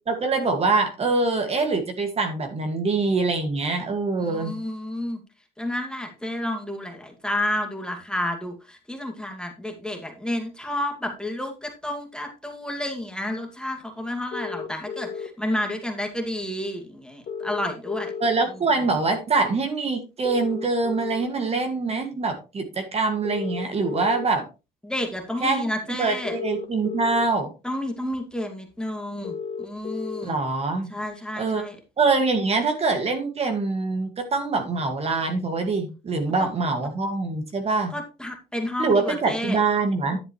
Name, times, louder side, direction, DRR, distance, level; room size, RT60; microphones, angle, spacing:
voice 1, 0.1-4.5 18.2-24.5 25.4-25.6 26.0-27.5 30.2-30.9 31.4-31.6 32.0-37.9 38.8-40.2, right 3 dB, 35° right, 6 dB, 2.1 m, -24 dB
voice 2, 4.2-5.2 5.6-18.1 24.8-26.4 27.6-30.4 30.9-31.8 36.4-36.5 37.9-39.6, left 1 dB, 5° left, 3 dB, 2.3 m, -30 dB
sound 1, 14.3-15.3 17.3-18.3 20.2-21.3 23.2-24.3 26.2-27.3 29.2-30.3, left 6 dB, 50° left, 2.3 m, -33 dB
11.0 x 7.4 x 3.2 m, 0.29 s
cardioid pair, 110°, 17 cm